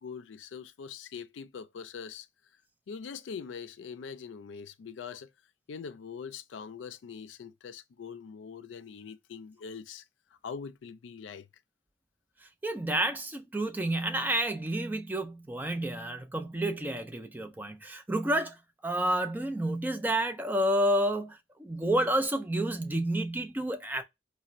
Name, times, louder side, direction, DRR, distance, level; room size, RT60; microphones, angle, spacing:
voice 1, 0.0-2.3 2.9-5.3 5.7-10.0 10.4-11.5, left 6 dB, 90° left, 0.4 m, -43 dB
voice 2, 12.6-24.0, right 1 dB, 10° right, 0.4 m, -30 dB
4.2 x 2.2 x 2.4 m
head